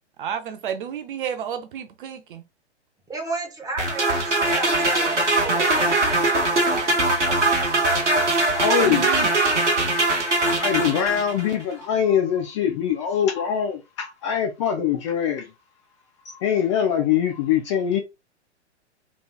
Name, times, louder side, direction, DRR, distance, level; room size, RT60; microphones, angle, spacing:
voice 1, 0.2-2.4 8.8-9.3, right 8 dB, 50° right, 0.6 m, -31 dB
voice 2, 3.1-5.7, right 3 dB, 10° right, 1.1 m, -32 dB
sound 1, 3.8-11.5, right 2 dB, 90° right, 1.2 m, -21 dB
voice 3, 8.5-9.1 9.6-15.5 16.2-18.0, left 8 dB, 25° left, 0.4 m, -23 dB
3.4 x 3.0 x 2.2 m
figure-of-eight pair, 110°, 35 cm